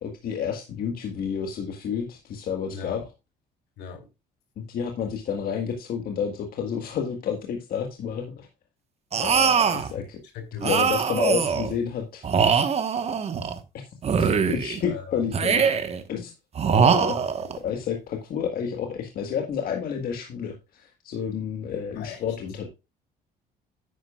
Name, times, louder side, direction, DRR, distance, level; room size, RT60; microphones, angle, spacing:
voice 1, 0.0-3.0 4.7-8.5 9.2-10.2 10.6-12.3 14.2-15.7 16.1-16.3 16.7-17.2 17.6-22.7, left 7 dB, 60° left, 1.6 m, -30 dB
sound 1, 9.1-9.9 10.6-11.7 12.2-13.6 14.0-14.8 15.3-16.0 16.6-17.6, right 6 dB, 40° right, 1.3 m, -22 dB
voice 2, 10.5-10.9 14.2-14.3 14.8-15.2 17.0-17.2 22.0-22.2, left 6 dB, 80° left, 3.1 m, -37 dB
10.0 x 9.5 x 2.4 m
cardioid pair, 110°, 17 cm